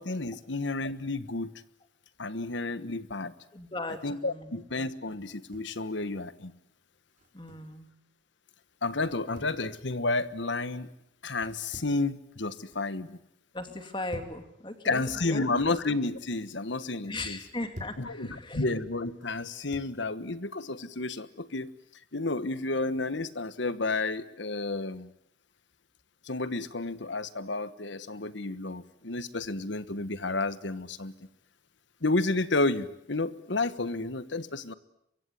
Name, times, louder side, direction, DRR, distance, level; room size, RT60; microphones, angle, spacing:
voice 1, 0.0-1.5 2.2-3.3 4.0-6.5 8.8-10.9 11.2-13.2 14.8-17.4 18.0-21.7 22.1-25.1 26.2-31.1 32.0-34.7, left 3 dB, 70° left, 14 dB, 1.3 m, -31 dB
voice 2, 3.5-4.6 7.3-7.9 13.5-15.7 17.1-18.7, left 2 dB, 25° left, 7 dB, 2.7 m, -38 dB
sound 1, 5.2-5.8 7.1-7.7 9.0-9.6 11.3-12.1 12.4-12.9 13.8-14.4 15.5-16.0 17.3-18.1 19.2-20.0, equal, 40° right, 4.0 m, -49 dB
24.5 x 23.5 x 9.7 m, 0.76 s
head